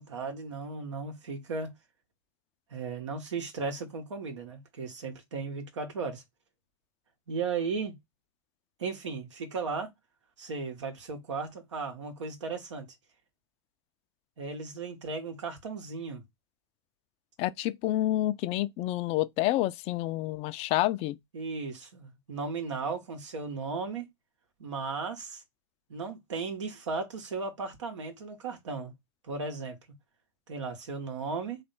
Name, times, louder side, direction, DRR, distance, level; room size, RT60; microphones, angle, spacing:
voice 1, 0.0-1.7 2.7-6.2 7.3-8.0 8.8-9.9 10.4-12.9 14.4-16.2 21.3-24.1 24.6-25.4 25.9-28.9 29.2-29.8 30.5-31.6, right 4 dB, 85° right, 1.8 m, -36 dB
voice 2, 17.4-21.2, left 15 dB, 45° left, 0.5 m, -28 dB
3.5 x 3.2 x 4.3 m
hypercardioid pair, 100°, 15 cm